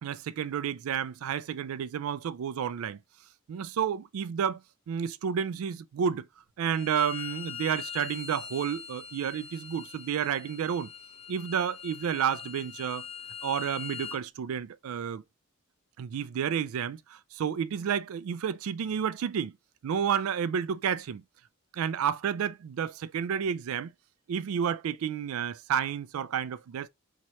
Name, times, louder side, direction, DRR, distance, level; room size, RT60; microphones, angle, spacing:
voice 1, 0.0-3.0 3.5-6.3 6.6-10.9 11.3-13.1 13.4-15.2 16.0-19.5 19.8-21.2 21.7-23.9 24.3-26.9, right 8 dB, 80° right, 0.3 m, -31 dB
Bowed string instrument, 6.7-14.2, left 7 dB, 30° left, 0.4 m, -42 dB
3.1 x 2.9 x 4.1 m
head